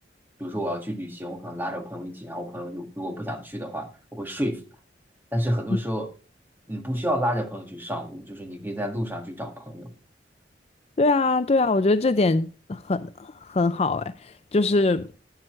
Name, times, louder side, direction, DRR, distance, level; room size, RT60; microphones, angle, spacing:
voice 1, 0.4-4.6 5.3-6.1 6.7-9.9, equal, 10° right, 1.6 m, -30 dB
voice 2, 11.0-15.1, left 3 dB, 35° left, 0.4 m, -23 dB
12.0 x 8.9 x 3.2 m
head